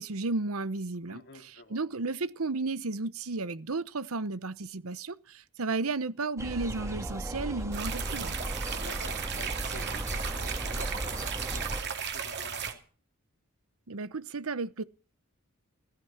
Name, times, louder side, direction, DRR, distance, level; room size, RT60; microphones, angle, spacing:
voice 1, 0.0-8.4 13.9-14.8, right 3 dB, 70° right, 0.9 m, -33 dB
voice 2, 1.1-1.8 7.7-7.8 8.8-12.8, left 3 dB, 55° left, 2.7 m, -50 dB
sound 1, 6.4-11.8, right 1 dB, 15° right, 2.0 m, -36 dB
sound 2, 7.7-12.7, right 7 dB, 50° right, 2.6 m, -35 dB
16.5 x 14.0 x 5.8 m
head